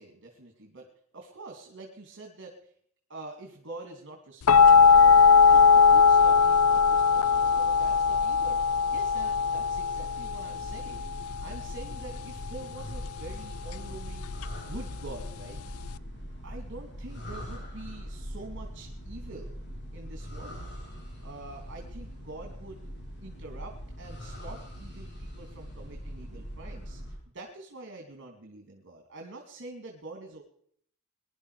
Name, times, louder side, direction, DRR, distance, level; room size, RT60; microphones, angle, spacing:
voice 1, 0.0-2.6 3.1-14.3 14.6-15.6 16.4-19.6 19.9-20.7 21.2-22.8 23.2-30.4, right 2 dB, 60° right, 3 dB, 2.8 m, -46 dB
sound 1, 4.5-16.0, left 5 dB, 80° left, 0.5 m, -21 dB
sound 2, 10.5-27.2, equal, 55° left, 6.9 m, -42 dB
21.0 x 11.5 x 5.0 m, 0.63 s
head